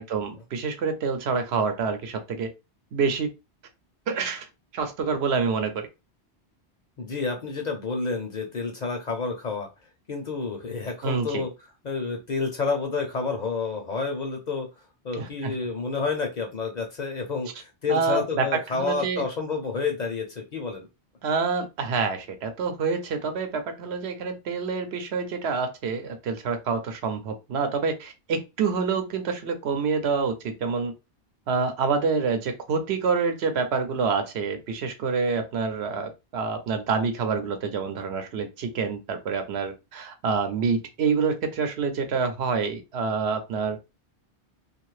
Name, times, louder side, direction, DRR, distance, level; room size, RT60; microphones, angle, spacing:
voice 1, 0.0-2.5 2.9-3.3 4.1-4.5 4.7-5.9 11.0-11.4 15.2-15.5 17.9-19.2 21.2-30.9 31.5-43.8, right 5 dB, 70° right, 0.9 m, -27 dB
voice 2, 7.0-9.7 10.1-11.5 11.8-14.7 15.0-20.9, left 4 dB, 50° left, 0.6 m, -29 dB
2.6 x 2.4 x 3.1 m
omnidirectional pair, 1.1 m